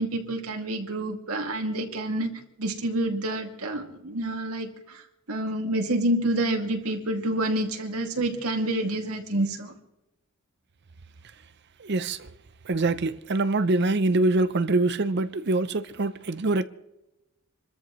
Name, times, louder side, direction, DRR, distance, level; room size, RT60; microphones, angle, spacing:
voice 1, 0.0-2.3 2.6-5.0 5.3-9.7, right 1 dB, 80° right, 2.4 m, -28 dB
voice 2, 11.8-12.3 12.6-16.6, right 2 dB, 50° right, 0.6 m, -24 dB
27.5 x 14.0 x 3.2 m
head